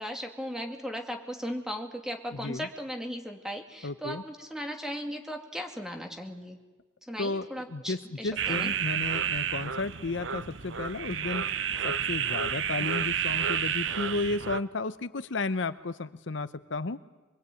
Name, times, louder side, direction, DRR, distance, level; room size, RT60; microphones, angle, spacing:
voice 1, 0.0-6.6 7.1-8.7, equal, 5° right, 4 dB, 2.3 m, -37 dB
voice 2, 2.3-2.7 3.8-4.2 7.2-11.5 11.8-17.0, left 3 dB, 70° left, 13 dB, 0.8 m, -33 dB
sound 1, 8.4-14.6, right 8 dB, 70° right, 0.8 m, -30 dB
24.0 x 23.0 x 9.2 m, 1.2 s
head